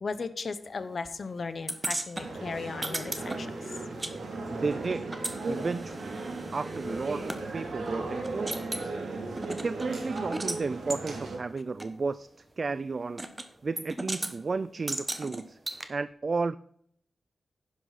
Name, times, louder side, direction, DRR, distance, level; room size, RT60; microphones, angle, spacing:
voice 1, 0.0-3.5, left 4 dB, 50° left, 11 dB, 0.9 m, -36 dB
sound 1, 1.7-4.1 4.4-7.4 7.9-8.0 8.2-8.9 9.4-10.6 10.9-11.0 11.8-11.9 13.2-13.5 13.8-14.3 14.9-15.8, right 2 dB, 20° right, 1.1 m, -36 dB
sound 2, 2.1-11.4, right 3 dB, 85° right, 3.0 m, -36 dB
voice 2, 4.5-5.1 5.5-6.2 6.5-9.0 9.5-12.3 12.6-13.2 13.6-15.6 15.9-16.5, right 4 dB, 40° right, 15 dB, 0.3 m, -33 dB
11.0 x 10.5 x 4.1 m, 0.65 s
wide cardioid pair, 140°, 0 cm